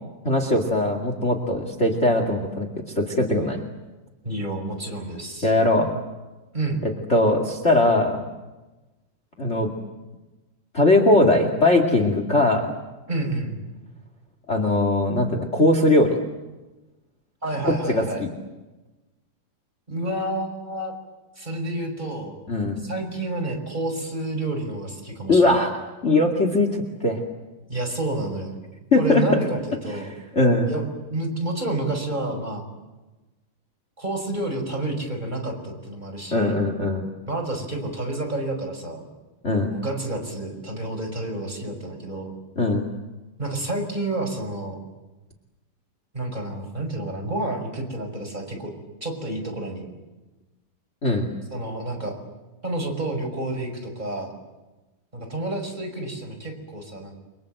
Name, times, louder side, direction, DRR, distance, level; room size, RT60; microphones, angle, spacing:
voice 1, 0.2-2.7 2.9-3.6 5.4-5.9 7.1-8.3 9.4-9.7 10.7-12.7 14.5-16.2 17.6-18.3 22.5-22.8 25.3-25.7 26.0-26.7 27.0-27.2 28.9-29.2 30.3-30.7 36.3-37.0 39.4-39.7 42.5-42.8 51.0-51.3, left 2 dB, 35° left, 3 dB, 1.1 m, -20 dB
voice 2, 4.2-5.5 6.5-6.8 13.1-13.6 17.4-18.2 19.9-20.9 21.4-22.4 22.8-25.7 27.7-28.6 29.0-30.1 30.7-30.8 31.1-32.6 34.0-36.6 37.3-39.0 39.7-42.3 43.4-44.8 46.1-48.7 49.0-49.9 51.5-52.2 52.6-54.3 55.1-57.2, right 2 dB, 10° right, 1 dB, 5.4 m, -29 dB
30.0 x 24.5 x 7.8 m, 1.1 s
omnidirectional pair, 5.2 m